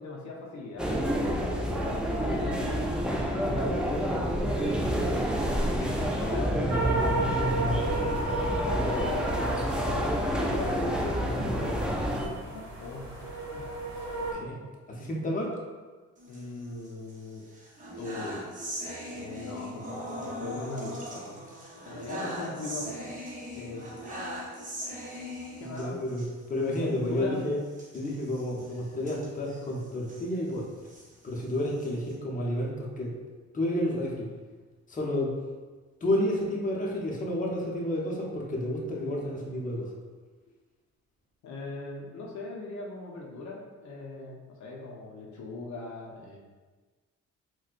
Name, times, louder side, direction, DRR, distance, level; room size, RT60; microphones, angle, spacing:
voice 1, 0.0-2.9 3.2-5.2 5.7-7.3 8.3-9.3 10.2-13.7 14.2-14.6 16.3-17.4 18.0-18.5 19.1-21.4 21.7-23.9 25.6-26.0 26.7-27.4 41.4-46.4, left 2 dB, 70° left, -2 dB, 0.6 m, -40 dB
sound 1, 0.8-12.3, equal, 5° right, 0.3 m, -28 dB
sound 2, 6.7-14.3, right 2 dB, 60° right, 1.0 m, -33 dB
voice 2, 14.9-15.5 25.6-27.6 27.9-30.6 31.2-33.2 33.5-34.3 34.9-35.3 36.0-39.9, left 1 dB, 25° left, -3 dB, 0.7 m, -30 dB
sound 3, 16.2-17.1 17.5-26.3 26.7-26.8 27.1-27.2 27.7-30.2 30.7-32.1, equal, 25° right, 0.8 m, -40 dB
4.2 x 2.2 x 2.5 m, 1.4 s
cardioid pair, 90°, 30 cm